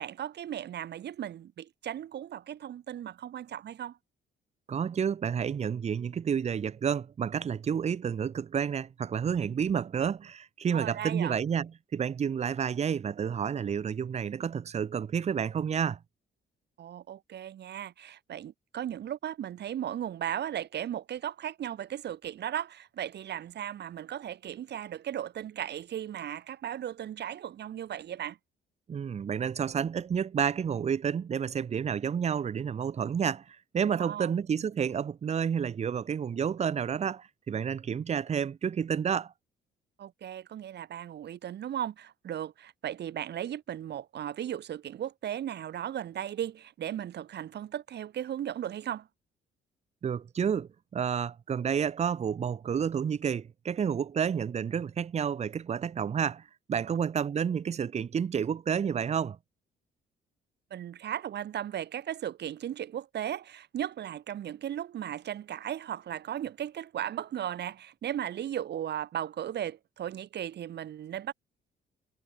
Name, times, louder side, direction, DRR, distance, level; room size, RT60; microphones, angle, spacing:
voice 1, 0.0-4.0 10.7-11.4 16.8-28.4 33.9-34.3 40.0-49.1 60.7-71.3, right 10 dB, 60° right, 0.9 m, -36 dB
voice 2, 4.7-16.0 28.9-39.3 50.0-56.4 56.7-59.4, right 7 dB, 35° right, 0.6 m, -30 dB
cardioid pair, 90°, 20 cm